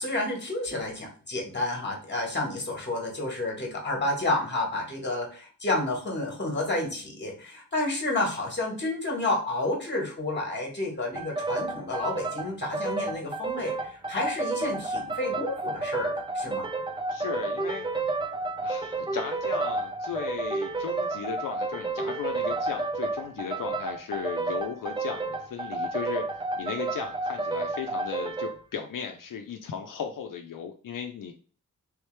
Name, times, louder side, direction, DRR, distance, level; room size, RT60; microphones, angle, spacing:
voice 1, 0.0-16.7, left 2 dB, 35° left, 1 dB, 1.5 m, -30 dB
sound 1, 11.1-28.6, right 3 dB, 15° right, 0.4 m, -31 dB
voice 2, 17.1-17.8 18.6-26.3 26.6-31.3, left 7 dB, 75° left, 3 dB, 0.5 m, -36 dB
3.5 x 3.2 x 3.2 m, 0.40 s
wide cardioid pair, 135°, 32 cm